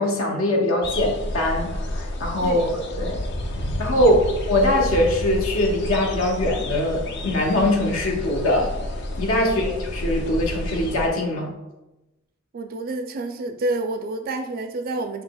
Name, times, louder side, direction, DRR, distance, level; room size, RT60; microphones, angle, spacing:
voice 1, 0.0-3.2 3.8-4.2 4.5-8.9 9.2-11.5, left 1 dB, 75° left, 0 dB, 0.8 m, -22 dB
sound 1, 0.8-11.1, left 1 dB, 55° left, 0.4 m, -30 dB
voice 2, 2.4-2.7 4.0-4.1 9.4-9.7 12.5-15.2, right 2 dB, 45° right, 6 dB, 0.3 m, -29 dB
5.7 x 2.8 x 2.2 m, 1.0 s
head